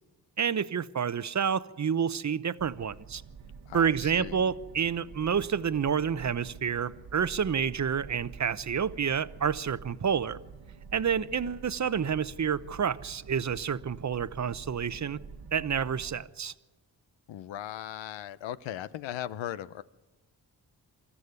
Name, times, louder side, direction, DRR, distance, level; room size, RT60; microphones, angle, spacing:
voice 1, 0.4-3.2 3.7-10.4 10.9-15.2 15.5-16.5, right 7 dB, 40° right, 0.9 m, -29 dB
sound 1, 2.6-16.2, right 5 dB, 70° right, 1.6 m, -48 dB
voice 2, 3.7-4.5 17.3-19.8, left 12 dB, 80° left, 0.8 m, -38 dB
24.0 x 14.0 x 9.7 m
supercardioid pair, 45°, 44 cm